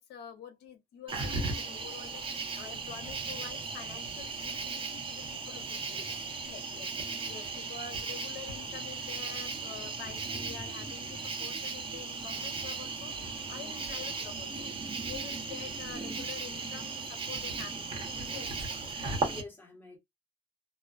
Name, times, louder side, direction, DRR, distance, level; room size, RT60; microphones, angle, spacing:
voice 1, 0.0-6.0 6.4-13.2 13.5-19.2, left 8 dB, 75° left, 1.0 m, -47 dB
Cricket, 1.1-19.4, right 4 dB, 30° right, 1.0 m, -37 dB
voice 2, 5.6-6.3 7.2-7.3 13.6-14.0 19.3-20.0, left 3 dB, 10° left, 1.4 m, -51 dB
2.3 x 2.3 x 2.4 m
cardioid pair, 110°, 17 cm